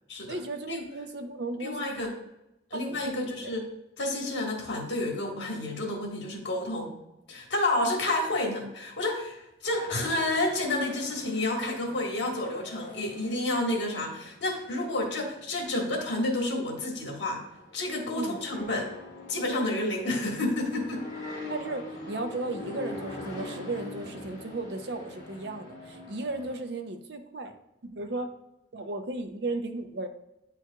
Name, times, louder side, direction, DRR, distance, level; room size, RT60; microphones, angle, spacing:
voice 1, 0.3-2.0 2.7-3.5 18.1-18.4 21.5-27.5 27.8-28.3 28.7-30.1, right 2 dB, 65° right, 7 dB, 0.6 m, -35 dB
voice 2, 1.6-2.1 2.7-3.6 4.0-6.9 7.3-17.4 17.7-18.9 19.3-21.1, left 1 dB, 75° left, 1 dB, 1.6 m, -30 dB
sound 1, 9.6-26.6, left 2 dB, 40° left, 2.3 m, -44 dB
9.2 x 4.6 x 2.3 m, 0.89 s
head